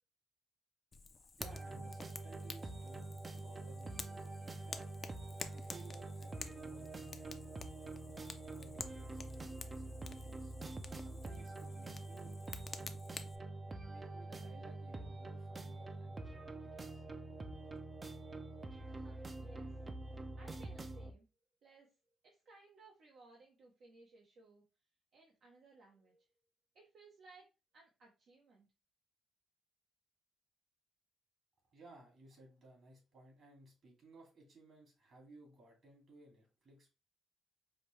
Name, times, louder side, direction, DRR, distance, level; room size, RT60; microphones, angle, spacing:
Fire, 0.9-13.3, left 4 dB, 35° left, 0.5 m, -51 dB
voice 1, 1.2-4.9 5.5-7.5 8.4-10.5 11.0-12.4 12.7-13.2 13.9-17.0 31.7-36.9, right 2 dB, 50° right, 0 dB, 2.4 m, -60 dB
sound 1, 1.4-21.1, right 2 dB, 30° right, 0.5 m, -46 dB
voice 2, 18.8-19.8 20.4-21.3 21.6-21.9 22.2-24.6 25.1-26.3 26.7-27.5 27.7-28.7, right 3 dB, 70° right, -2 dB, 1.0 m, -61 dB
5.0 x 2.2 x 3.2 m, 0.29 s
cardioid pair, 90°, 0 cm